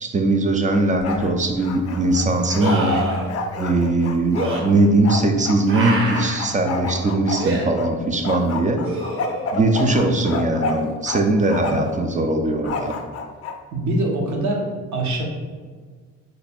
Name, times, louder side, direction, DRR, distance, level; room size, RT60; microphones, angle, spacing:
voice 1, 0.0-3.0 3.6-8.8 9.5-12.9, right 2 dB, 25° right, 4 dB, 0.3 m, -20 dB
Bark, 0.7-1.3 1.6-5.6 6.1-7.9 8.2-11.2 11.5-12.0 12.6-13.6, left 3 dB, 50° left, 0.5 m, -29 dB
sound 1, 1.0-1.1 2.6-3.3 4.3-4.6 5.7-6.4 7.4-7.6 8.8-9.5 12.7-12.8, right 2 dB, 45° right, 0.8 m, -25 dB
voice 2, 13.7-15.2, right 1 dB, 70° right, 0 dB, 0.8 m, -24 dB
3.2 x 2.2 x 4.2 m, 1.5 s
cardioid pair, 90°, 30 cm